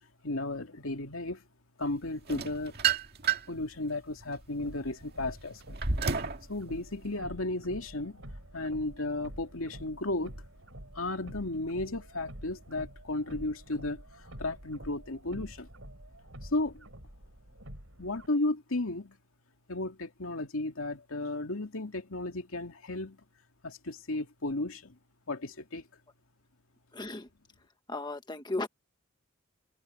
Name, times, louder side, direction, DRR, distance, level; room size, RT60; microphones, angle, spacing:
voice 1, 0.2-1.4 1.8-2.8 3.5-5.8 6.5-8.2 8.5-10.3 10.9-15.7 16.4-16.8 18.0-19.2 19.7-23.2 23.6-25.0 25.3-25.8, left 2 dB, 80° left, 2.4 m, -34 dB
sound 1, 2.3-3.6 4.2-6.4, right 6 dB, 50° right, 1.9 m, -30 dB
sound 2, 4.6-18.3, right 1 dB, 70° right, 6.9 m, -48 dB
voice 2, 26.9-27.3 27.9-28.7, left 2 dB, 20° left, 1.4 m, -35 dB
head